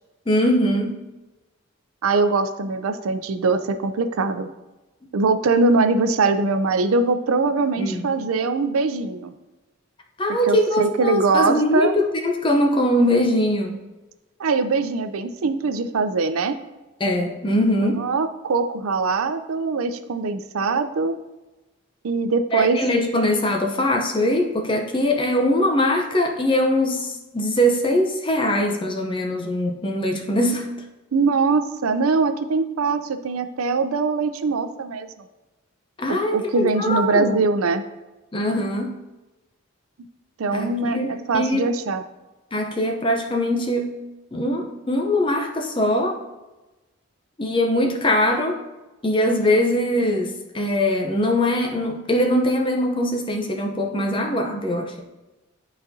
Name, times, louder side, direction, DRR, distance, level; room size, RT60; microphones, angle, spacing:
voice 1, 0.3-1.0 7.8-8.0 10.2-13.8 17.0-18.1 22.5-30.7 36.0-37.4 38.3-39.0 40.5-41.7 42.5-44.0 44.3-46.2 47.4-48.6 49.0-54.9, left 1 dB, 25° left, 2 dB, 0.7 m, -22 dB
voice 2, 2.0-4.5 5.1-9.3 10.4-11.9 14.4-16.6 17.8-21.2 22.0-22.8 31.1-35.1 36.1-37.8 40.4-42.0, right 3 dB, 90° right, 9 dB, 0.5 m, -22 dB
11.0 x 4.1 x 2.7 m, 1.1 s
head